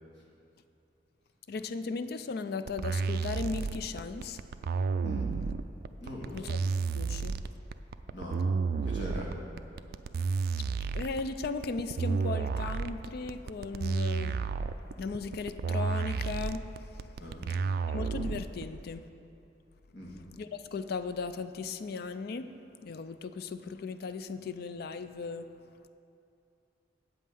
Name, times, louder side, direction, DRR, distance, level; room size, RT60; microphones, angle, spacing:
voice 1, 1.5-4.4 6.3-6.6 7.0-7.4 10.9-14.4 15.0-16.9 17.9-19.1 20.4-22.5 22.8-25.5, left 4 dB, 60° left, 11 dB, 0.4 m, -37 dB
sound 1, 2.7-18.6, right 5 dB, 55° right, 0.3 m, -31 dB
voice 2, 5.0-5.3 6.0-6.4 8.1-8.5 8.8-9.3 17.2-17.5 19.9-20.1, equal, 80° left, -3 dB, 1.9 m, -40 dB
8.4 x 5.5 x 7.6 m, 2.6 s
head